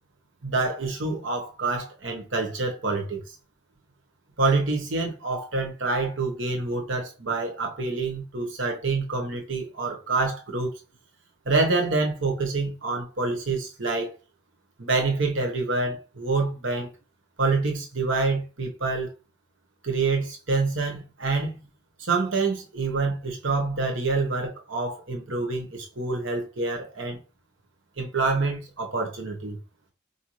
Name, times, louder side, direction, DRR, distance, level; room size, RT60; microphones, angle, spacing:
voice 1, 0.4-3.2 4.4-10.7 11.4-14.1 14.8-16.9 17.4-19.1 19.8-21.6 22.0-27.2 28.0-29.6, right 3 dB, 75° right, 1.1 m, -27 dB
4.7 x 2.7 x 3.1 m
head